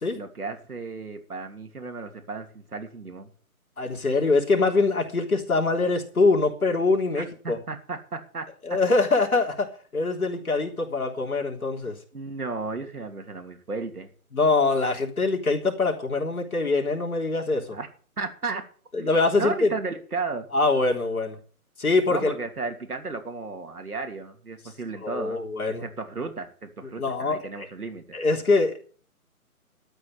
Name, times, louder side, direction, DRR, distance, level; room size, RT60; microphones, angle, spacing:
voice 1, 0.1-3.3 7.1-8.4 11.9-14.1 17.7-17.9 18.2-18.6 19.0-19.1 19.4-20.5 22.1-25.4 25.8-28.0, right 4 dB, 80° right, 3.1 m, -34 dB
voice 2, 3.8-7.6 8.6-9.7 9.9-12.0 14.3-17.8 18.9-19.7 20.5-21.4 21.8-22.3 25.0-25.8 27.0-27.7 28.1-28.8, left 3 dB, 75° left, 3.6 m, -23 dB
13.0 x 6.0 x 9.1 m
figure-of-eight pair, 160°, 44 cm